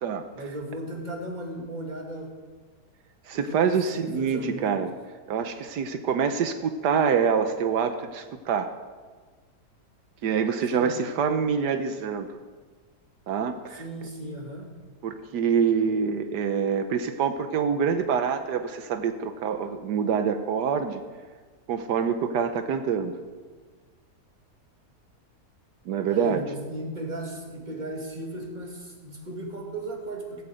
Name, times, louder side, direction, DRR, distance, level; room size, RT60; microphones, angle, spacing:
voice 1, 0.3-2.3 3.3-4.8 10.7-11.0 13.7-14.7 26.1-30.4, right 1 dB, 25° right, 0 dB, 2.6 m, -36 dB
voice 2, 3.3-4.9 5.3-8.7 10.2-12.3 13.3-13.8 15.0-21.0 21.7-23.2 25.9-26.4, right 6 dB, 85° right, 8 dB, 1.5 m, -26 dB
15.5 x 15.0 x 5.1 m, 1.4 s
omnidirectional pair, 1.7 m